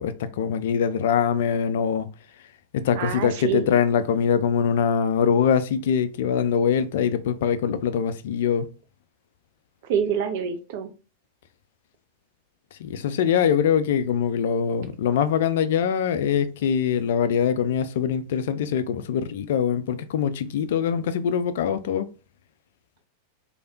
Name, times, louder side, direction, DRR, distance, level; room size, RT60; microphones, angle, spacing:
voice 1, 0.0-2.1 2.7-8.7 12.7-22.1, left 7 dB, 55° left, 0.3 m, -23 dB
voice 2, 2.9-3.7 9.8-10.9, right 7 dB, 50° right, 0.5 m, -26 dB
3.2 x 2.2 x 2.7 m
figure-of-eight pair, 90°, 0 cm